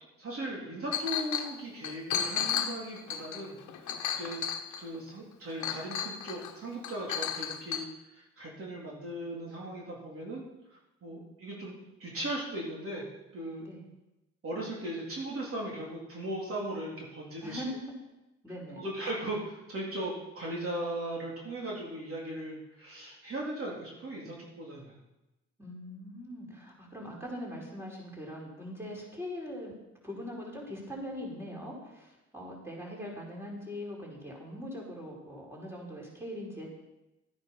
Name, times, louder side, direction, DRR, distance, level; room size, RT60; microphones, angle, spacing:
voice 1, 0.2-3.8 4.2-4.4 4.8-10.4 10.7-13.1 13.3-13.7 14.4-17.6 18.7-24.9, right 1 dB, 45° right, -4 dB, 3.8 m, -38 dB
Chink clink, 0.9-1.5 1.8-5.0 5.6-6.5 6.8-7.8, left 8 dB, 75° left, 1.2 m, -33 dB
voice 2, 17.4-17.8 18.4-18.8 25.6-29.7 30.0-36.7, left 1 dB, 10° right, -3 dB, 4.7 m, -41 dB
12.5 x 9.2 x 6.0 m, 0.98 s
cardioid pair, 90°, 30 cm